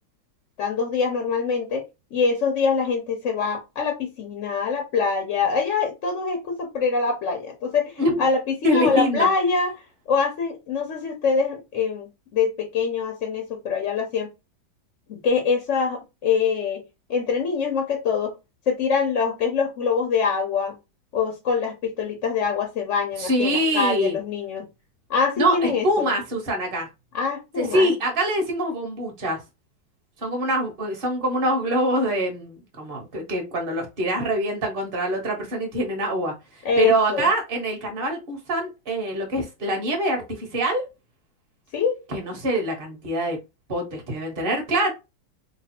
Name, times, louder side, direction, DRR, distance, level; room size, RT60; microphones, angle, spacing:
voice 1, 0.6-1.8 2.1-9.7 10.1-14.3 15.1-16.8 17.1-18.3 18.7-20.7 21.1-24.7 25.1-26.1 27.1-27.9 36.6-37.3 41.7-42.0, left 5 dB, 60° left, 0.8 m, -24 dB
voice 2, 8.6-9.3 23.2-24.1 25.4-26.9 27.6-29.4 30.2-36.3 36.8-40.8 42.1-43.4 43.7-44.9, right 1 dB, 35° right, 1.1 m, -24 dB
3.2 x 2.3 x 4.3 m
omnidirectional pair, 2.2 m